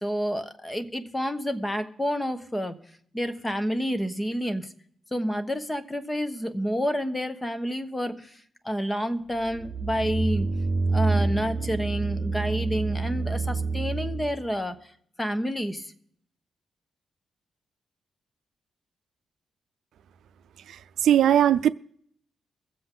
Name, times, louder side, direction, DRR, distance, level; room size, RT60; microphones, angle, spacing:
voice 1, 0.0-2.7 3.1-4.7 5.1-10.5 10.9-14.9 15.2-15.9, equal, 10° left, 1.2 m, -29 dB
sound 1, 9.3-14.4, right 3 dB, 40° right, 3.5 m, -28 dB
voice 2, 20.7-21.7, right 10 dB, 80° right, 0.4 m, -20 dB
23.0 x 7.8 x 3.9 m
cardioid pair, 115°, 0 cm